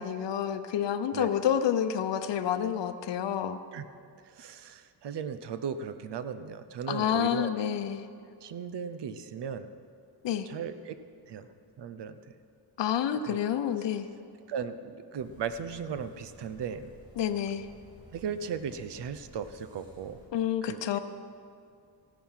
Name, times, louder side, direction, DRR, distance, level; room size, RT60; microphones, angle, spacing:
voice 1, 0.0-3.6 6.9-8.0 10.2-10.5 12.8-14.1 17.2-17.7 20.3-21.0, left 9 dB, 85° left, 10 dB, 0.8 m, -29 dB
voice 2, 4.3-7.5 8.4-9.7 10.5-10.9 11.3-11.5 11.8-12.2 13.3-13.4 14.5-16.9 18.1-20.2 20.6-21.0, right 7 dB, 75° right, 11 dB, 0.8 m, -36 dB
sound 1, 15.2-20.3, equal, 10° right, 2.5 m, -55 dB
15.5 x 10.5 x 5.7 m, 2.4 s
wide cardioid pair, 150°, 42 cm